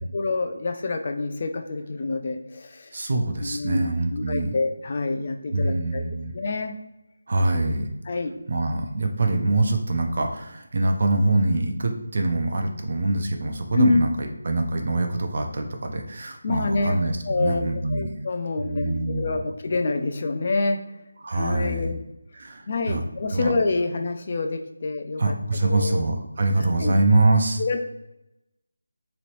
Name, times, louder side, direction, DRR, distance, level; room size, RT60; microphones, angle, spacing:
voice 1, 0.1-2.9 3.4-3.9 4.1-6.0 6.3-6.7 8.1-8.3 13.7-14.0 16.4-17.0 17.2-20.8 21.3-22.0 22.7-25.3 25.6-26.0 26.6-26.9 27.6-27.8, left 3 dB, 40° left, 5 dB, 0.4 m, -26 dB
voice 2, 2.9-4.5 5.5-6.3 7.3-7.9 8.5-18.1 18.6-19.4 21.2-21.9 22.3-23.0 23.3-23.5 25.2-27.6, right 2 dB, 50° right, 4 dB, 0.5 m, -24 dB
3.0 x 2.9 x 2.8 m, 0.90 s
figure-of-eight pair, 170°, 0 cm